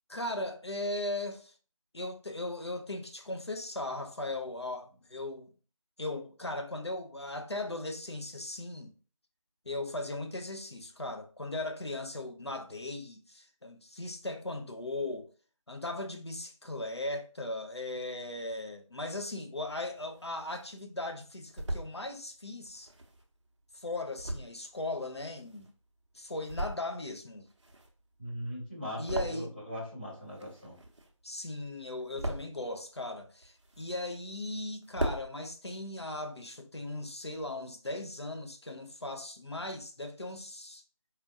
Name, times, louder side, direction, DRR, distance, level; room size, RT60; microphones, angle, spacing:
voice 1, 0.1-1.5 1.9-5.5 6.0-8.9 9.7-15.3 15.7-22.9 23.7-25.7 26.1-27.4 29.0-29.5 31.2-40.8, left 2 dB, 50° left, 0.5 m, -38 dB
sound 1, 19.8-20.7 21.2-21.9 22.6-25.9 26.3-27.1 27.4-29.8 30.1-31.3 31.7-32.7 33.2-34.2 34.5-34.6 34.8-35.3, right 1 dB, 55° right, 0.7 m, -39 dB
voice 2, 28.2-30.8, equal, 15° left, 1.0 m, -40 dB
4.2 x 2.4 x 2.5 m
figure-of-eight pair, 175°, 18 cm